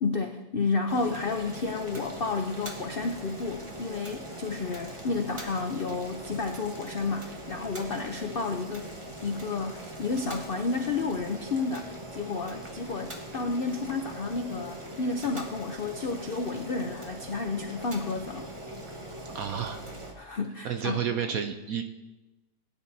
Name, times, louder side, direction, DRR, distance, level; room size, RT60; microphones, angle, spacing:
voice 1, 0.0-8.9 9.2-18.5 20.2-21.1, left 4 dB, 80° left, 5 dB, 0.5 m, -31 dB
Boiling, 0.9-20.1, right 1 dB, 20° right, 1.1 m, -41 dB
voice 2, 19.2-19.8 20.6-21.8, right 8 dB, 65° right, 6 dB, 1.0 m, -31 dB
17.5 x 9.9 x 2.7 m, 1.1 s
omnidirectional pair, 1.8 m